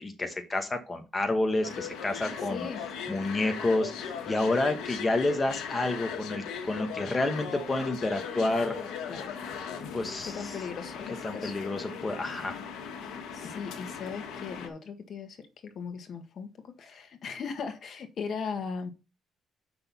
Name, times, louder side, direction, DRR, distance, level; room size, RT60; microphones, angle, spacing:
voice 1, 0.0-2.6 3.1-8.8 9.9-10.5 11.2-12.5, left 2 dB, 20° left, 1.1 m, -29 dB
sound 1, 1.6-14.7, left 6 dB, 85° left, 1.5 m, -38 dB
voice 2, 2.3-2.8 9.1-9.3 10.2-11.5 13.3-18.9, left 5 dB, 50° left, 1.5 m, -38 dB
7.6 x 6.1 x 4.1 m
cardioid pair, 115°, 0 cm